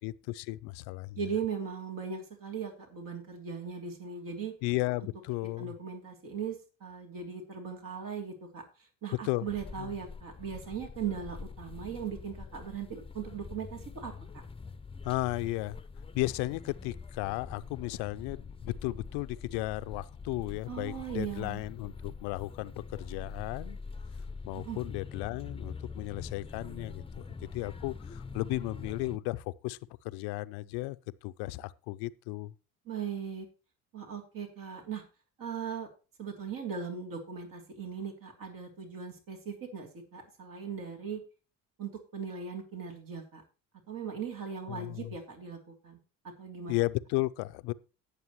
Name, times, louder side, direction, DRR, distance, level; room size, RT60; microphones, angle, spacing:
voice 1, 0.0-1.2 4.6-5.7 9.2-9.5 9.8-9.9 15.0-15.8 16.1-23.8 24.4-29.8 30.0-31.0 31.2-32.5 44.7-45.1 46.7-47.7, left 20 dB, 70° left, 0.7 m, -34 dB
voice 2, 1.2-4.5 5.6-8.6 9.0-14.1 20.7-21.6 24.6-24.8 32.9-33.5 33.9-35.0 35.4-35.9 36.2-41.2 41.8-43.4 43.9-45.6 45.8-46.0 46.2-46.7, right 7 dB, 55° right, 3.1 m, -38 dB
sound 1, 9.5-29.2, left 4 dB, 15° left, 0.8 m, -44 dB
18.0 x 6.8 x 3.1 m
hypercardioid pair, 55°, 41 cm